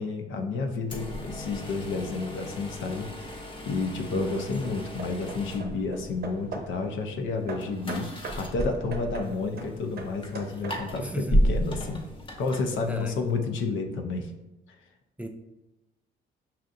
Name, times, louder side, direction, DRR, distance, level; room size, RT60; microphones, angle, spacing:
voice 1, 0.0-8.1 8.3-12.0 12.4-14.3, left 3 dB, 75° left, 4 dB, 0.6 m, -31 dB
sound 1, 0.8-13.4, equal, 25° left, 0.7 m, -34 dB
Hammer / Wood, 3.6-3.7 4.4-6.8 7.5-11.1, right 3 dB, 55° right, 0.6 m, -41 dB
voice 2, 4.1-4.5 11.0-11.5 12.8-13.2 15.2-15.3, equal, 5° right, 5 dB, 0.3 m, -35 dB
5.5 x 2.5 x 2.5 m, 0.99 s
cardioid pair, 90°, 20 cm